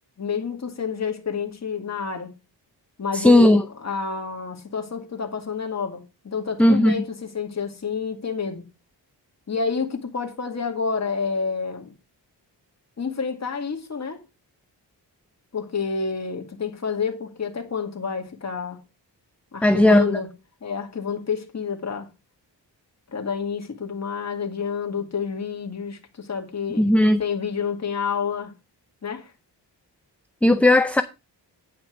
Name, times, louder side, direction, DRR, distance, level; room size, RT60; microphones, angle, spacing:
voice 1, 0.2-2.4 3.0-8.6 9.5-11.9 13.0-14.2 15.5-18.8 19.5-20.3 20.6-22.1 23.1-26.9 27.2-28.5 29.0-29.3, left 5 dB, 40° left, 2.2 m, -29 dB
voice 2, 3.1-3.6 6.6-6.9 19.6-20.2 26.8-27.2 30.4-31.0, left 1 dB, 5° left, 0.5 m, -16 dB
9.6 x 5.8 x 5.0 m
wide cardioid pair, 105°, 43 cm